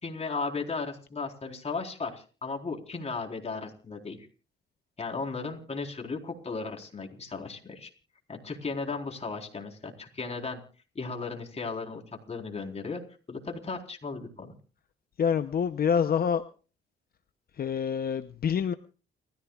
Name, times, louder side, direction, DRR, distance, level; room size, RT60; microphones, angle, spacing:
voice 1, 0.0-4.3 5.0-7.9 8.3-10.6 10.9-12.0 12.3-13.0 13.3-14.5, left 4 dB, 30° left, 2 dB, 4.2 m, -35 dB
voice 2, 15.2-16.4 17.6-18.7, left 7 dB, 50° left, 10 dB, 0.8 m, -26 dB
29.5 x 15.0 x 2.4 m, 0.38 s
cardioid pair, 90°, 20 cm